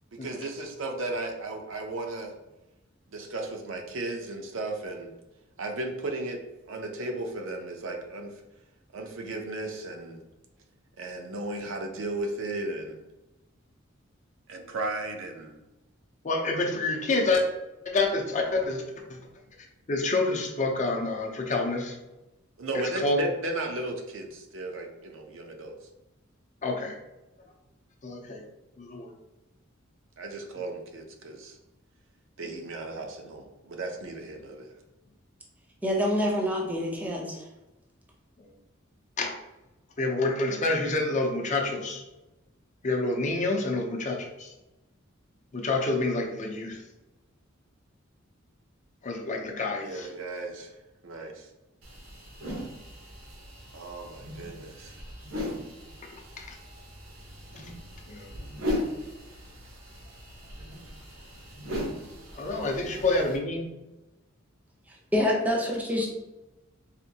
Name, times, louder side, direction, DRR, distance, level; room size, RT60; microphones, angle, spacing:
voice 1, 0.1-2.3 3.1-5.1 5.6-6.4 6.7-8.4 8.9-10.2 11.0-13.0 14.5-15.6 22.6-25.7 30.2-31.6 32.4-34.7 49.8-50.7 51.0-51.5 53.7-55.0 63.1-63.2, right 2 dB, 70° right, 3 dB, 0.6 m, -35 dB
voice 2, 16.2-17.4 17.9-18.8 19.1-19.2 19.9-22.0 22.7-23.2 26.6-27.0 28.0-28.4 28.8-29.1 39.2-39.3 40.0-42.0 42.8-44.5 45.5-46.8 49.0-50.1 56.4-56.5 62.3-63.6, left 2 dB, 40° left, 1 dB, 0.6 m, -28 dB
voice 3, 35.8-37.5 65.1-66.1, left 1 dB, 10° right, -1 dB, 0.7 m, -26 dB
sound 1, 51.8-63.4, left 1 dB, 85° right, 1.0 m, -38 dB
4.2 x 2.6 x 2.7 m, 1.0 s
head